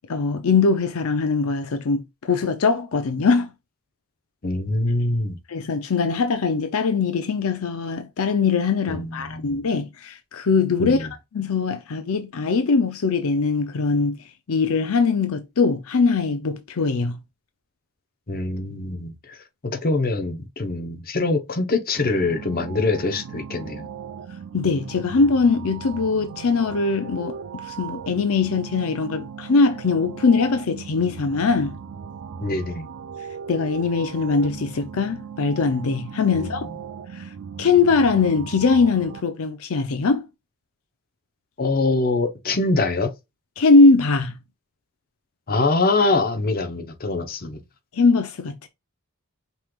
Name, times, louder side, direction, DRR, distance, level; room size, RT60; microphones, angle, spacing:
voice 1, 0.1-3.5 5.5-14.2 14.5-17.2 24.5-27.4 27.6-31.7 33.5-36.7 37.1-37.3 37.6-40.3 43.6-44.3 47.9-48.7, left 4 dB, 70° left, 0.5 m, -21 dB
voice 2, 4.4-5.4 8.9-9.6 10.8-11.1 18.3-19.4 19.6-23.9 32.4-32.9 36.4-36.6 41.6-43.1 45.5-47.6, left 3 dB, 45° left, 0.8 m, -24 dB
sound 1, 21.9-39.2, right 7 dB, 65° right, 0.4 m, -38 dB
5.5 x 3.1 x 2.3 m
head